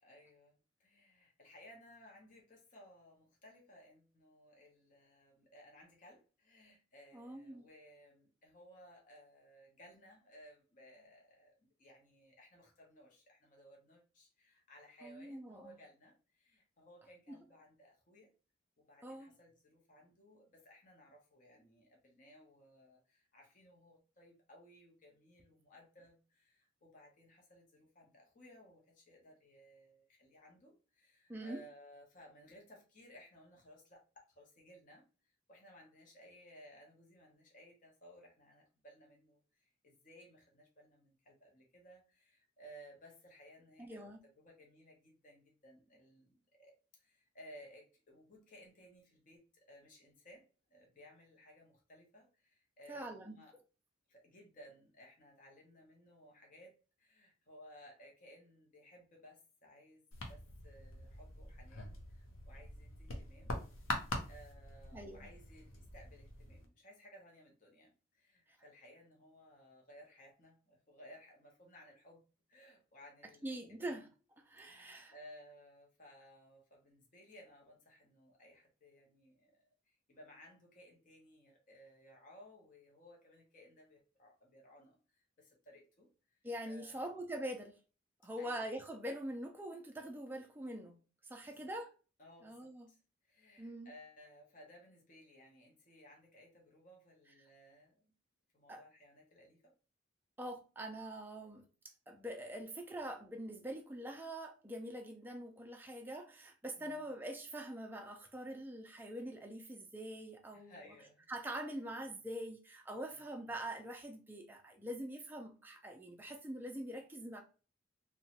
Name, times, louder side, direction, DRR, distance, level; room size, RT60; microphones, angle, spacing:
voice 1, 0.0-0.5 0.8-18.3 18.8-35.1 35.5-44.1 44.4-50.4 50.7-53.5 54.1-60.0 60.3-63.5 64.3-72.2 72.5-73.9 74.6-86.4 86.6-87.1 88.4-88.7 91.4-91.7 92.2-93.0 93.2-98.1 98.5-99.7 106.8-107.1 110.5-111.3 113.2-113.6, equal, 40° left, 0.7 m, -60 dB
voice 2, 7.1-7.6 15.0-15.8 17.3-17.4 19.0-19.3 31.3-31.6 43.8-44.2 52.9-53.4 64.9-65.3 68.5-68.6 73.4-74.1 74.4-75.1 86.4-87.8 88.2-91.0 91.2-91.9 92.4-92.9 93.6-93.9 98.7-98.8 100.4-101.6 102.1-110.9 111.3-117.4, right 1 dB, 10° right, 0.4 m, -44 dB
sound 1, 60.1-66.7, left 2 dB, 90° left, 0.7 m, -44 dB
2.9 x 2.2 x 2.8 m
head